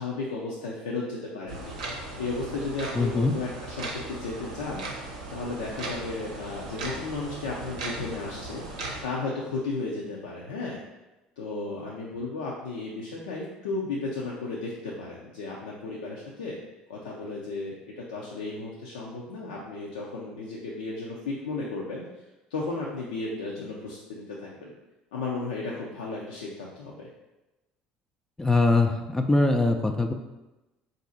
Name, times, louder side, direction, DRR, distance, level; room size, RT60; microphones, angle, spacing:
voice 1, 0.0-1.7 2.2-4.8 5.3-8.6 9.0-10.8 11.4-16.6 16.9-22.0 22.5-24.7 25.1-27.1, left 3 dB, 85° left, -4 dB, 0.5 m, -34 dB
sound 1, 1.5-9.0, right 2 dB, 90° right, 0.7 m, -38 dB
voice 2, 3.0-3.4 28.4-30.1, left 2 dB, 15° left, 5 dB, 0.4 m, -22 dB
4.0 x 2.6 x 3.9 m, 1.0 s
hypercardioid pair, 70°, 4 cm